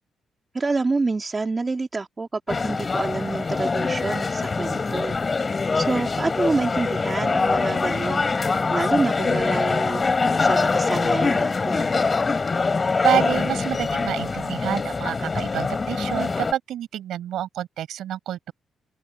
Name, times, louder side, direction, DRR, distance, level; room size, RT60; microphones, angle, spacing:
voice 1, 0.5-5.2 5.7-8.2 8.7-10.0 10.4-11.9, right 3 dB, 30° right, 3.2 m, -27 dB
sound 1, 2.5-16.5, left 4 dB, 35° left, 5.1 m, -24 dB
voice 2, 13.0-18.5, right 11 dB, 80° right, 5.5 m, -28 dB
cardioid pair, 80°, 0 cm